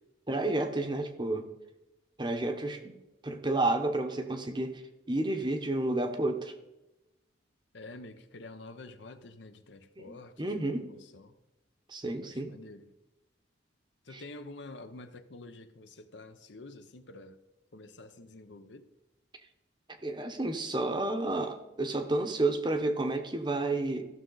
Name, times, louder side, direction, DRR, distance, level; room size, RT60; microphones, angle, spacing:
voice 1, 0.3-1.5 2.2-3.0 3.2-4.8 5.1-6.5 10.0-10.8 11.9-12.5 14.1-14.2 20.0-24.0, right 2 dB, 25° right, 0.8 m, -31 dB
voice 2, 7.7-11.4 12.2-12.9 14.0-17.4 17.7-18.9, left 2 dB, 65° left, 0.7 m, -48 dB
15.0 x 6.3 x 3.9 m
head